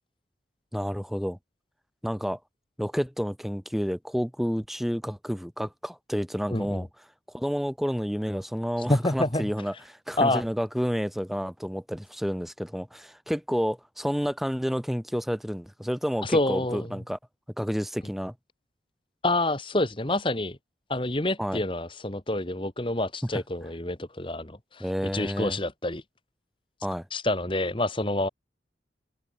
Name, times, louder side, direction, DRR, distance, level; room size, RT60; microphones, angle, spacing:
voice 1, 0.7-1.4 2.0-2.4 2.8-6.9 7.3-17.2 17.6-18.3 21.4-21.6 24.8-25.6 26.8-27.1, equal, ahead, 5.6 m, -30 dB
voice 2, 6.5-6.8 8.8-9.4 10.2-10.4 16.2-16.9 19.2-20.6 20.9-26.0 27.1-28.3, left 1 dB, 25° left, 1.6 m, -27 dB
open air
head